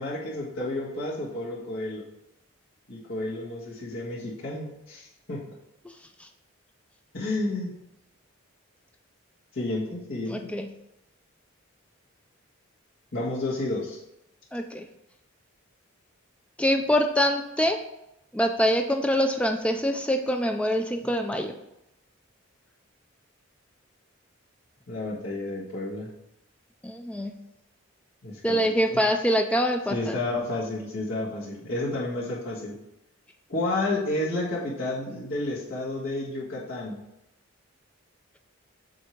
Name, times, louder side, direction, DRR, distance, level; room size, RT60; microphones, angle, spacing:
voice 1, 0.0-2.0 2.9-5.4 7.1-7.8 9.5-10.4 13.1-14.0 24.9-26.1 28.2-29.0 29.9-32.8 33.5-37.0, left 2 dB, 70° left, -7 dB, 1.4 m, -31 dB
voice 2, 10.3-10.7 14.5-14.9 16.6-17.8 18.3-21.5 26.8-27.3 28.4-30.2, equal, 5° left, 5 dB, 0.4 m, -24 dB
7.7 x 2.8 x 4.5 m, 0.88 s
head